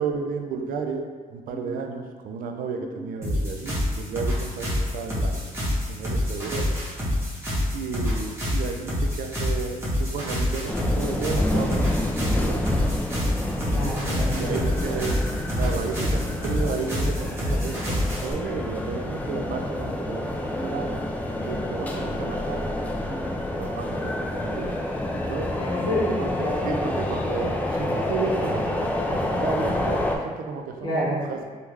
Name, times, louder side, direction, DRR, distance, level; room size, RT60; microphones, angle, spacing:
voice 1, 0.0-5.4 5.9-6.8 7.7-12.7 14.0-15.2 15.6-21.0 21.5-22.7 23.6-24.7 25.3-25.5 26.2-31.4, right 5 dB, 80° right, 4 dB, 0.4 m, -33 dB
sound 1, 3.2-18.3, left 1 dB, 15° right, 1.0 m, -27 dB
sound 2, 10.7-30.2, left 1 dB, 10° left, 0.3 m, -28 dB
voice 2, 13.7-14.6 14.8-14.9 16.4-17.0 19.3-19.6 20.2-20.9 21.3-22.2 23.1-23.5 25.5-26.9 30.8-31.2, equal, 35° left, -8 dB, 1.3 m, -32 dB
3.4 x 2.3 x 3.1 m, 1.5 s
cardioid pair, 110°, 15 cm